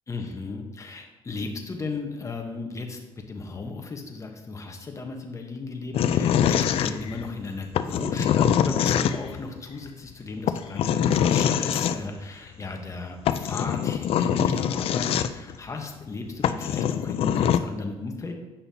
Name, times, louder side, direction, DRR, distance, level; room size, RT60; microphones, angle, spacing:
voice 1, 0.1-3.0 3.3-18.3, left 3 dB, 30° left, 3 dB, 1.1 m, -35 dB
sound 1, 5.9-7.3 7.7-9.4 10.5-12.0 12.9-13.0 13.3-15.6 16.1-16.2 16.4-17.6, left 9 dB, 65° left, 0.4 m, -23 dB
8.5 x 5.5 x 2.8 m, 1.2 s
cardioid pair, 105°, 11 cm